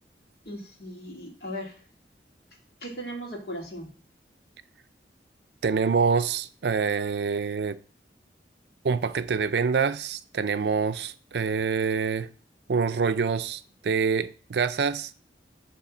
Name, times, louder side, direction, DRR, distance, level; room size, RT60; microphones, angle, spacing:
voice 1, 0.5-1.8 2.8-3.9, equal, 60° left, 2.0 m, -37 dB
voice 2, 5.6-7.8 8.8-12.3 12.7-15.1, right 5 dB, 70° right, 0.4 m, -26 dB
8.0 x 3.4 x 5.9 m
head